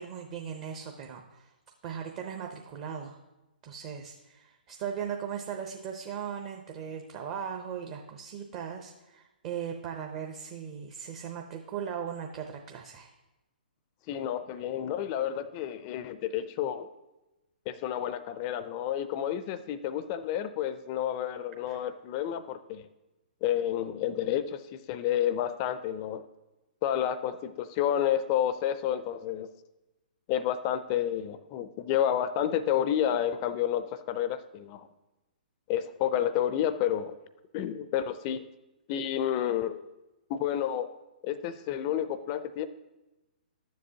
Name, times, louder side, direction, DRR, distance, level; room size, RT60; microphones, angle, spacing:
voice 1, 0.0-1.5 1.8-3.2 3.6-13.1 21.7-21.8, right 8 dB, 35° right, 2 dB, 0.7 m, -38 dB
voice 2, 14.1-16.9 17.7-22.9 23.4-26.2 26.8-29.5 30.3-34.9 35.7-37.2 37.5-38.4 38.9-39.8 40.3-40.9 41.2-42.7, left 10 dB, 35° left, 13 dB, 0.4 m, -30 dB
12.0 x 7.4 x 2.8 m, 1.0 s
figure-of-eight pair, 125°, 5 cm